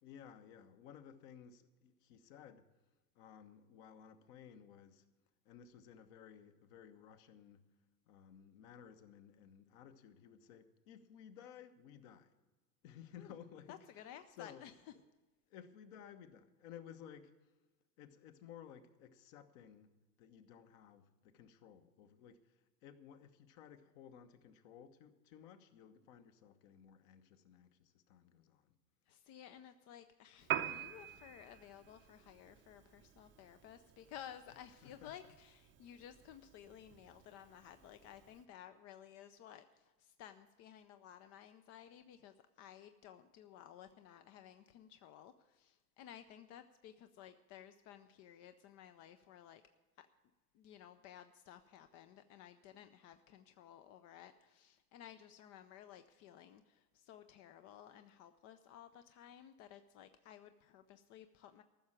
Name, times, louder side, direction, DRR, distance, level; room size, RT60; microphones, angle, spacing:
voice 1, 0.0-2.7 3.1-5.1 5.4-7.7 8.1-12.3 12.8-14.0 14.4-14.6 14.9-15.0 15.5-17.5 18.0-19.9 20.2-28.7 34.8-35.1, left 8 dB, 50° left, 1.3 m, -57 dB
voice 2, 13.7-14.9 29.1-49.6 50.0-50.1 50.5-61.6, left 10 dB, 35° left, 0.6 m, -56 dB
Piano, 30.4-38.4, right 11 dB, 25° right, 0.7 m, -47 dB
14.5 x 6.4 x 8.9 m
hypercardioid pair, 95°, 49 cm